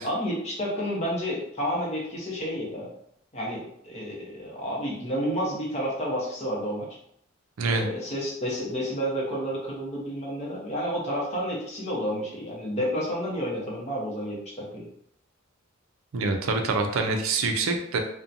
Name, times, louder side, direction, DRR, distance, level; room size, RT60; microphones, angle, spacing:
voice 1, 0.0-2.9 3.3-6.9 7.6-14.9, equal, 30° left, -4 dB, 0.8 m, -30 dB
voice 2, 16.1-18.0, right 3 dB, 75° right, 4 dB, 0.4 m, -25 dB
2.8 x 2.1 x 2.5 m, 0.72 s
head